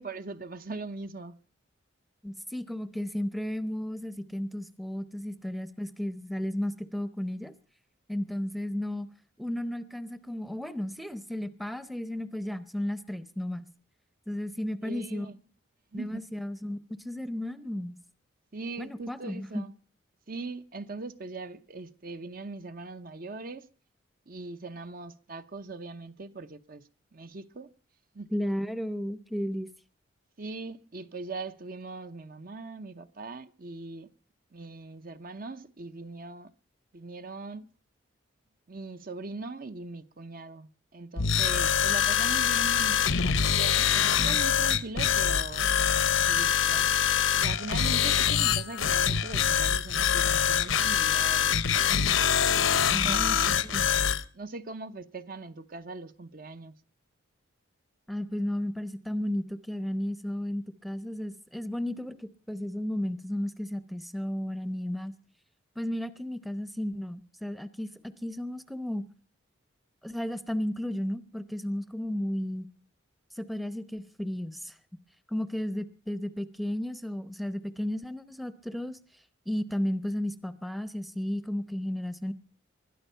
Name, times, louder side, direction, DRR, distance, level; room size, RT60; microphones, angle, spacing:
voice 1, 0.0-1.4 14.8-15.4 15.9-16.3 18.5-19.7 20.3-23.7 24.3-27.7 28.1-28.3 30.4-34.1 34.5-36.5 36.9-37.7 38.7-45.7 46.2-46.9 47.3-51.8 52.5-56.7, right 3 dB, 45° right, 0.8 m, -41 dB
voice 2, 2.2-7.5 8.1-9.1 9.4-13.7 14.3-15.3 15.9-18.0 18.8-19.6 28.3-29.7 52.9-53.9 58.1-65.1 65.8-67.9 68.2-69.0 70.0-72.7 73.3-74.8 75.3-82.3, left 1 dB, ahead, 0.7 m, -34 dB
sound 1, 41.2-54.2, left 8 dB, 70° left, 0.9 m, -24 dB
21.0 x 12.5 x 5.6 m
head